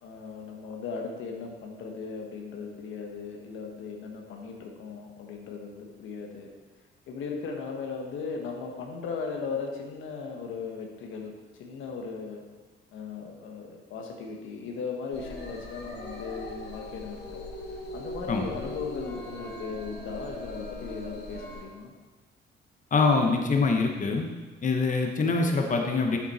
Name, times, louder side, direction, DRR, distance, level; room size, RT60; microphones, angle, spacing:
voice 1, 0.0-6.5 7.1-11.3 11.6-12.4 12.9-17.4 17.9-21.9, left 5 dB, 85° left, 1 dB, 1.3 m, -37 dB
sound 1, 15.1-21.6, left 1 dB, 60° left, 2.3 m, -40 dB
voice 2, 22.9-24.3 24.6-26.2, left 4 dB, 40° left, 3 dB, 1.2 m, -24 dB
8.3 x 7.3 x 4.2 m, 1.3 s
cardioid pair, 90°, 20 cm